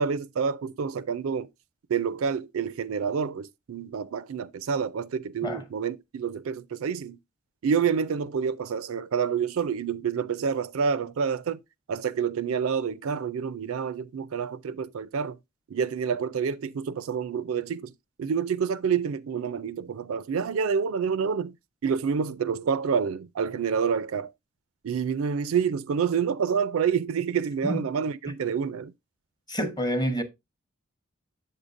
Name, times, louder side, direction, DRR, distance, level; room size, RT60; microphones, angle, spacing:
voice 1, 0.0-1.5 1.9-7.2 7.6-11.6 11.9-15.4 15.7-17.9 18.2-21.5 21.8-24.3 24.8-28.9, right 6 dB, 75° right, 0.4 m, -28 dB
voice 2, 29.5-30.2, equal, 20° left, 0.8 m, -28 dB
7.8 x 6.5 x 2.5 m
head